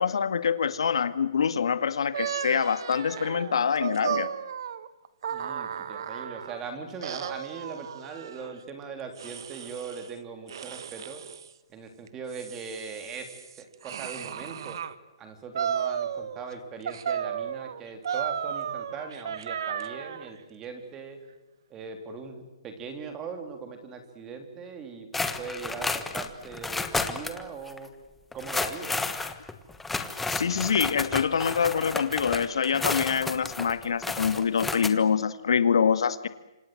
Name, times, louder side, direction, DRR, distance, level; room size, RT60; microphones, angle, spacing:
voice 1, 0.0-4.3 30.3-36.3, left 6 dB, 75° left, 11 dB, 2.0 m, -25 dB
sound 1, 2.1-6.6 7.0-8.5 9.2-10.1 10.5-11.5 12.1-14.9 15.5-16.5 16.9-20.3, right 8 dB, 55° right, 1.5 m, -34 dB
voice 2, 5.3-11.2 11.7-13.3 13.6-14.8 15.2-21.2 21.7-25.1 25.4-27.9 28.3-29.0, right 5 dB, 15° right, 5 dB, 3.5 m, -40 dB
sound 2, 25.1-27.4 27.7-27.8 28.3-34.9, left 3 dB, 5° left, 1.3 m, -32 dB
28.0 x 26.5 x 7.9 m, 1.0 s
hypercardioid pair, 165°, 3 cm